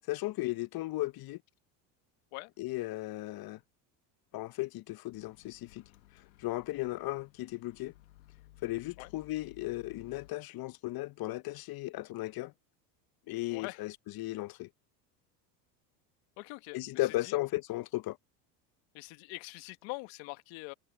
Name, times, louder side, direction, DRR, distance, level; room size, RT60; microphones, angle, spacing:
voice 1, 0.1-1.4 2.6-3.6 4.3-5.8 6.4-7.9 8.6-12.5 13.3-14.7 16.7-18.2, left 18 dB, 45° left, 0.9 m, -36 dB
Microwave oven, 5.1-10.3, left 18 dB, 85° left, 1.5 m, -58 dB
voice 2, 13.5-13.8 16.4-17.4 18.9-20.7, left 25 dB, 65° left, 1.4 m, -44 dB
hypercardioid pair, 85°, 50 cm